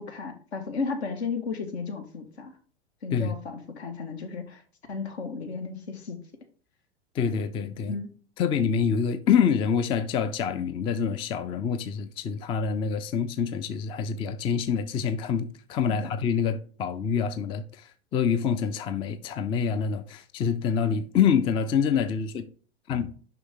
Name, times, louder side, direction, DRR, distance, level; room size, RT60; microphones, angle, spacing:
voice 1, 0.0-2.5 3.0-4.6 4.9-6.2 7.9-8.1 15.9-16.1, left 4 dB, 70° left, 1.7 m, -34 dB
voice 2, 7.1-8.0 8.4-22.5 22.9-23.1, left 7 dB, 15° left, 0.3 m, -26 dB
6.8 x 5.4 x 3.7 m
hypercardioid pair, 100°, 33 cm